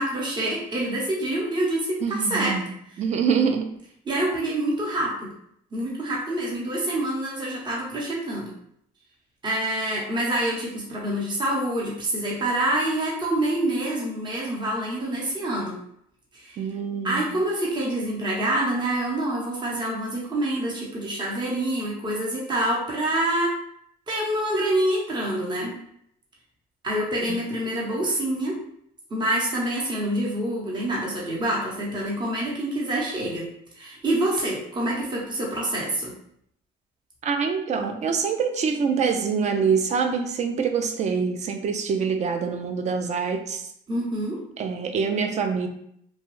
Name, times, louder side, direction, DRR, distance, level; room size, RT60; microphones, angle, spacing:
voice 1, 0.0-2.6 4.1-5.3 5.7-8.5 9.4-15.8 16.3-16.6 17.0-23.6 24.1-25.8 26.8-28.6 29.1-33.5 33.8-36.1 43.9-44.4, right 1 dB, 25° right, -4 dB, 0.9 m, -26 dB
voice 2, 2.0-3.7 16.6-17.4 27.3-27.4 37.2-43.7 44.6-45.7, right 6 dB, 45° right, 6 dB, 0.4 m, -25 dB
3.0 x 2.2 x 3.1 m, 0.70 s
cardioid pair, 110°, 17 cm